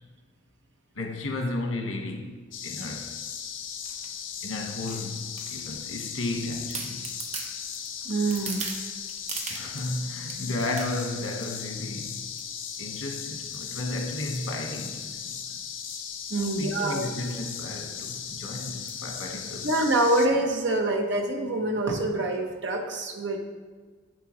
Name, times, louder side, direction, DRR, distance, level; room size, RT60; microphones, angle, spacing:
voice 1, 0.9-3.1 4.4-7.1 9.5-12.2 12.8-15.6 16.4-19.7, left 2 dB, 85° left, 3 dB, 1.3 m, -34 dB
sound 1, 2.5-20.3, left 7 dB, 65° left, 0.7 m, -37 dB
sound 2, 3.8-4.1 4.9-5.9 6.4-6.5 6.7-9.9 10.3-11.7 12.2-12.5 12.7-13.1 13.5-15.3 15.8-16.0 16.3-16.4 16.6-16.8 17.3-17.4 17.8-17.9 18.9-19.1 19.7-19.8, right 5 dB, 35° right, 0.8 m, -40 dB
voice 2, 8.0-8.6 16.3-17.1 19.6-23.4, right 2 dB, 60° right, 3 dB, 1.1 m, -25 dB
9.2 x 7.6 x 3.1 m, 1.5 s
head